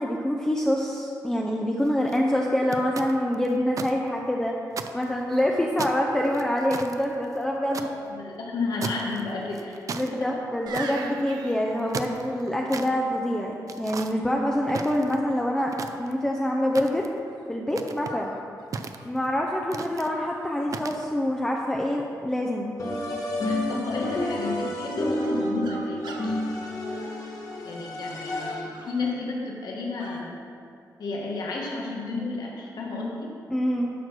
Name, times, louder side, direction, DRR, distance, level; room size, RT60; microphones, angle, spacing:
voice 1, 0.0-4.5 4.9-7.9 9.9-15.7 16.0-17.0 17.5-18.3 19.0-22.7 23.7-23.8 33.5-33.9, left 1 dB, 10° left, -1 dB, 0.7 m, -26 dB
sound 1, 1.8-2.2 2.7-3.9 4.3-4.4 4.7-5.4 5.8-7.9 8.8-9.2 9.5-10.1 10.7-11.1 11.7-12.9 13.7-14.1 14.7-15.3 15.7-16.3 16.7-17.2 17.7-18.2 18.7-19.3 19.7-20.1 20.7-21.0, right 5 dB, 55° right, 0.5 m, -35 dB
voice 2, 7.8-9.8 18.1-18.2 23.4-26.4 27.6-30.4 31.0-33.4, left 3 dB, 80° left, -2 dB, 1.5 m, -32 dB
sound 2, 10.7-12.4 15.6-16.0 16.7-17.5 18.1-19.1 19.8-19.9 20.2-20.6 20.9-21.5 25.2-27.7 28.2-29.1 30.0-30.2, right 4 dB, 90° right, 0.9 m, -44 dB
sound 3, 22.8-28.9, left 1 dB, 55° left, 1.7 m, -30 dB
11.0 x 4.5 x 6.1 m, 2.4 s
wide cardioid pair, 110°, 7 cm